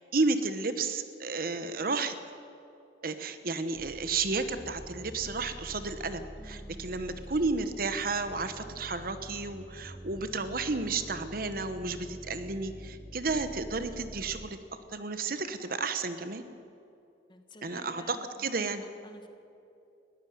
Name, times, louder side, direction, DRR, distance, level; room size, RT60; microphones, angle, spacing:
voice 1, 0.1-2.1 3.0-14.6 14.9-16.4 17.6-18.8, right 3 dB, 50° right, 10 dB, 1.1 m, -32 dB
sound 1, 3.7-14.5, equal, 10° right, 1.0 m, -46 dB
voice 2, 6.4-7.2 17.3-19.3, left 1 dB, 25° left, 6 dB, 1.7 m, -53 dB
20.5 x 15.5 x 9.4 m, 2.6 s
head